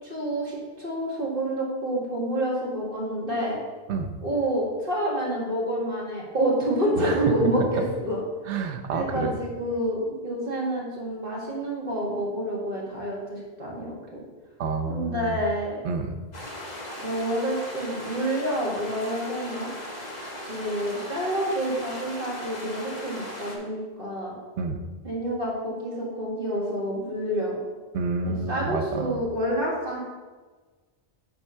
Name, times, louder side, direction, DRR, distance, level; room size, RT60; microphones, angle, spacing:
voice 1, 0.0-3.6 4.2-8.2 8.9-14.3 14.9-15.8 17.0-19.7 20.5-24.3 25.0-27.6 28.3-30.0, right 1 dB, 50° right, -4 dB, 2.1 m, -28 dB
voice 2, 7.0-7.5 8.5-9.4 14.6-15.4 15.8-16.1 24.6-24.8 27.9-29.3, right 4 dB, 80° right, 4 dB, 1.0 m, -29 dB
sound 1, 16.3-23.6, left 1 dB, 40° left, 1.4 m, -38 dB
8.7 x 3.5 x 5.5 m, 1.3 s
omnidirectional pair, 1.2 m